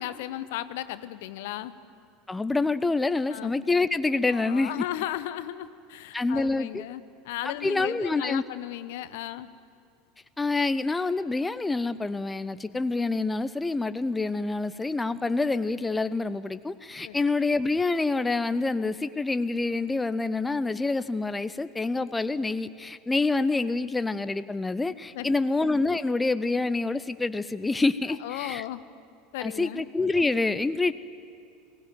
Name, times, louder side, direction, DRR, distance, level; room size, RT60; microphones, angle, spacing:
voice 1, 0.0-1.7 3.3-3.5 4.3-9.5 17.0-17.2 25.2-25.3 28.2-28.8 29.3-29.8, left 14 dB, 60° left, 14 dB, 0.8 m, -35 dB
voice 2, 2.3-4.7 6.1-6.8 7.4-8.4 10.4-28.6 29.4-30.9, left 3 dB, 10° left, 13 dB, 0.6 m, -27 dB
21.5 x 18.0 x 9.4 m, 2.5 s
figure-of-eight pair, 75°, 0 cm